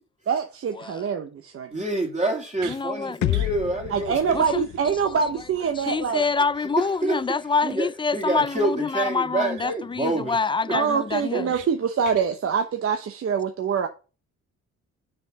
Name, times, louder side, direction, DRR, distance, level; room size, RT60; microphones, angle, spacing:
voice 1, 0.3-1.7 3.9-6.2 10.7-13.9, right 6 dB, 50° right, 0.9 m, -25 dB
voice 2, 1.7-4.1 7.0-7.2 7.6-10.4 10.6-10.8 11.3-11.5, right 2 dB, 25° right, 2.6 m, -27 dB
sound 1, 2.6-2.8 3.3-3.6 3.9-4.0 4.3-4.4 4.7-4.8 9.0-9.1 9.5-9.9 10.3-10.4 10.8-11.7 12.0-12.2, right 8 dB, 85° right, 1.4 m, -43 dB
voice 3, 2.7-3.4 4.3-4.7 5.8-11.5, left 4 dB, 15° left, 0.3 m, -26 dB
sound 2, 3.2-7.1, left 13 dB, 70° left, 0.6 m, -32 dB
6.5 x 4.6 x 5.3 m
cardioid pair, 90°, 30 cm